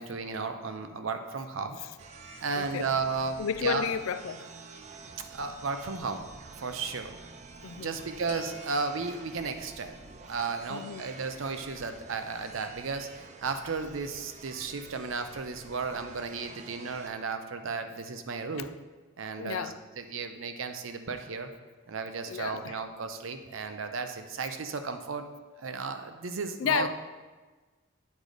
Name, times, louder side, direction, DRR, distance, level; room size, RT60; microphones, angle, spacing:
voice 1, 0.0-1.8 2.4-3.9 5.3-6.3 6.6-7.1 7.8-10.0 10.3-18.7 19.2-21.5 21.9-25.3 25.6-26.9, right 4 dB, 80° right, 0.6 m, -34 dB
sound 1, 2.0-17.1, right 4 dB, 35° right, 0.4 m, -49 dB
voice 2, 2.6-2.9 3.4-4.5 7.6-8.0 10.7-11.1 18.6-18.7 19.4-19.8 22.3-22.8 26.6-26.9, left 7 dB, 90° left, 0.4 m, -32 dB
sound 2, 8.3-10.1, left 2 dB, 35° left, 0.7 m, -50 dB
8.3 x 3.9 x 4.9 m
head